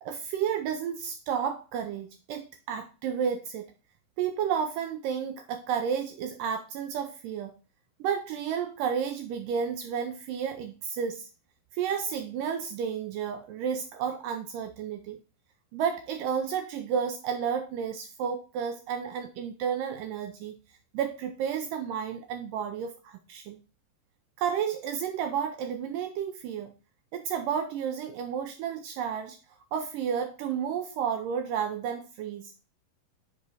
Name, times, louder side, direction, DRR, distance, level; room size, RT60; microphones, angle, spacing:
voice 1, 0.0-3.7 4.2-7.5 8.0-11.3 11.7-15.2 15.7-20.6 20.9-23.6 24.4-26.7 27.1-29.4 29.7-32.5, right 7 dB, 80° right, 7 dB, 1.9 m, -31 dB
5.5 x 5.2 x 4.6 m, 0.34 s
omnidirectional pair, 4.4 m